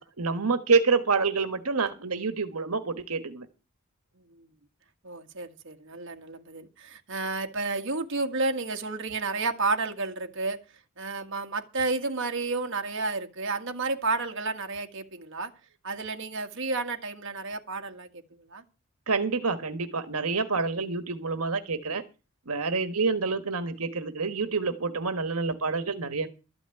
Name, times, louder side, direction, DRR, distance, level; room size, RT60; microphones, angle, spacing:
voice 1, 0.0-3.5 19.1-22.0 22.5-26.3, right 4 dB, 90° right, 1.4 m, -27 dB
voice 2, 5.0-10.6 11.0-15.5 15.8-18.1 18.5-18.6, right 3 dB, 60° right, 1.7 m, -31 dB
13.0 x 6.1 x 9.1 m
head